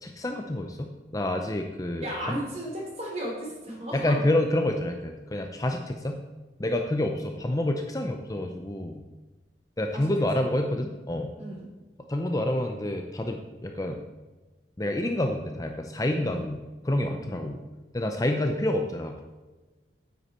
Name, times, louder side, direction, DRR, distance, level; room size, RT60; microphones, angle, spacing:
voice 1, 0.0-2.4 3.9-6.2 6.6-9.0 9.8-11.3 12.1-14.0 14.8-17.6 17.9-19.3, left 1 dB, 20° left, 4 dB, 0.6 m, -28 dB
voice 2, 2.0-4.2 9.9-10.1 11.4-11.7 16.2-16.4 17.2-17.5, equal, 35° right, -1 dB, 3.2 m, -35 dB
9.5 x 8.2 x 4.3 m, 1.2 s
head